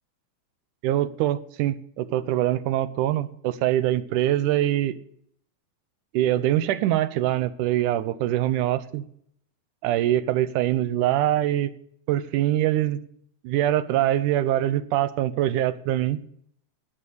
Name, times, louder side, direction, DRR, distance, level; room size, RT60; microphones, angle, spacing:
voice 1, 0.8-4.9 6.1-9.0 9.8-11.7 12.1-13.0 13.4-16.2, right 13 dB, 75° right, 14 dB, 2.2 m, -23 dB
18.0 x 6.1 x 8.3 m, 0.67 s
omnidirectional pair, 3.8 m